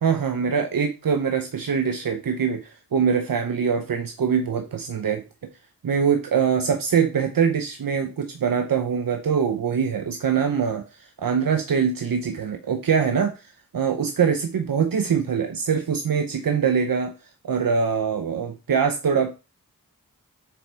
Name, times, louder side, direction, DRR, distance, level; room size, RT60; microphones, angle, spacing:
voice 1, 0.0-5.2 5.8-13.3 13.7-17.1 17.4-19.3, right 6 dB, 75° right, 6 dB, 0.7 m, -23 dB
7.0 x 4.3 x 3.4 m, 0.29 s
cardioid pair, 45°, 35 cm